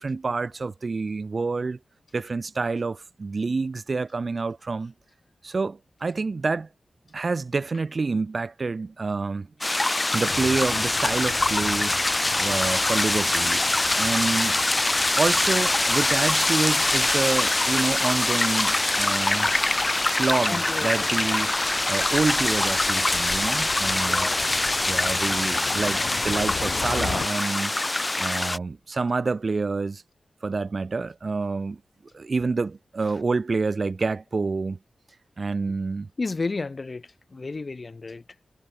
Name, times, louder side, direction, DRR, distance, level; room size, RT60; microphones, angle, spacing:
voice 1, 0.0-1.8 2.1-4.9 5.4-6.7 7.1-9.5 10.1-12.0 12.4-13.6 14.0-14.6 15.2-19.5 20.1-21.5 21.9-24.3 24.8-27.7 28.2-30.0 30.4-31.8 32.1-34.8 35.4-36.1, right 4 dB, 50° right, 3.2 m, -28 dB
sound 1, 9.6-28.6, left 2 dB, 25° left, 0.5 m, -24 dB
sound 2, 10.2-27.3, left 6 dB, 85° left, 3.4 m, -40 dB
voice 2, 20.5-20.9 24.1-24.4 36.2-38.2, left 3 dB, 45° left, 5.7 m, -32 dB
wide cardioid pair, 90°, 0 cm